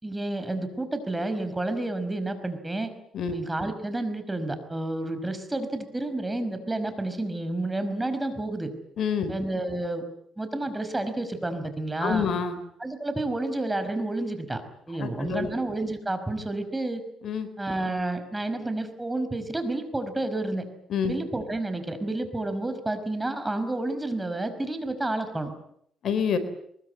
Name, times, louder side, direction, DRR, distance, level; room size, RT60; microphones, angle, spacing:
voice 1, 0.0-2.9 3.3-8.7 9.3-10.0 10.4-12.3 12.8-14.6 14.9-17.0 17.6-20.6 21.1-25.5, right 2 dB, 15° right, 9 dB, 5.2 m, -30 dB
voice 2, 9.0-9.4 12.0-12.6 15.0-15.6 17.2-17.5 20.9-21.1 26.0-26.4, left 6 dB, 65° left, 12 dB, 4.1 m, -27 dB
23.0 x 22.0 x 9.6 m, 0.70 s
cardioid pair, 90°, 0 cm